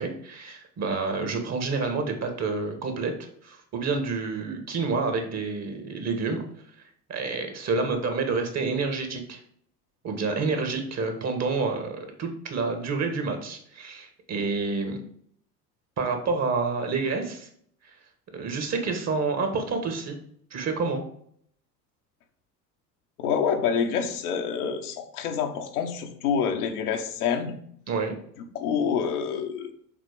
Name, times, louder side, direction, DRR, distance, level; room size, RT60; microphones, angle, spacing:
voice 1, 0.0-3.1 3.4-6.4 7.1-9.4 10.0-15.0 16.0-17.5 18.3-20.2 20.5-21.0 27.9-28.1, right 4 dB, 35° right, 5 dB, 1.6 m, -28 dB
voice 2, 23.2-27.6 28.5-29.7, left 7 dB, 65° left, 3 dB, 1.2 m, -27 dB
7.5 x 4.1 x 5.0 m, 0.64 s
figure-of-eight pair, 65°, 48 cm